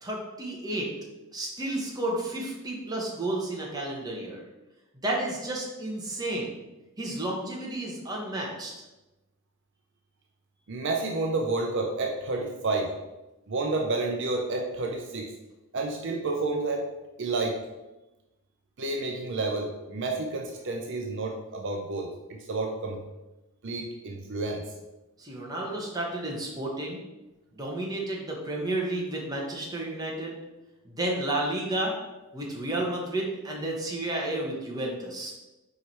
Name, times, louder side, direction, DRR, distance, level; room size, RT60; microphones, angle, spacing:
voice 1, 0.0-0.9 1.3-4.4 5.0-6.5 7.0-8.7 25.2-27.0 27.5-30.3 30.8-31.9 32.3-35.3, right 1 dB, 15° right, -2 dB, 1.2 m, -31 dB
voice 2, 10.7-12.9 13.5-15.3 15.7-16.9 17.2-17.6 18.8-23.0 23.6-24.6, right 3 dB, 55° right, 2 dB, 0.6 m, -30 dB
4.9 x 4.6 x 4.2 m, 1.0 s
head